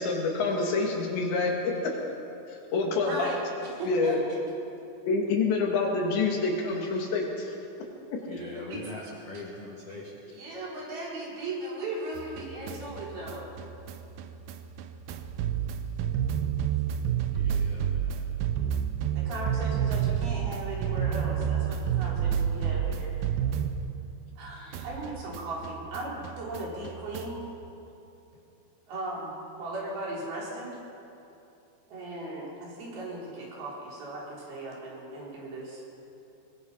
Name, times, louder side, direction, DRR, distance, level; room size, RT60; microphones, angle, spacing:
voice 1, 0.0-2.0 2.5-3.3 3.8-4.2 5.1-7.5 8.1-8.2, left 3 dB, 80° left, 0 dB, 4.7 m, -27 dB
voice 2, 2.9-3.5 3.8-4.4 8.3-8.8 9.3-9.4 9.9-10.0 10.3-13.5 19.2-23.1 24.4-27.4 28.9-30.8 31.9-35.8, right 2 dB, 60° right, -4 dB, 5.8 m, -37 dB
voice 3, 8.3-10.1 17.3-18.2 24.5-24.8, left 2 dB, 45° left, -3 dB, 2.3 m, -42 dB
sound 1, 12.2-24.4 24.7-27.5, right 9 dB, 80° right, 2.2 m, -30 dB
22.0 x 22.0 x 5.6 m, 2.8 s
omnidirectional pair, 5.1 m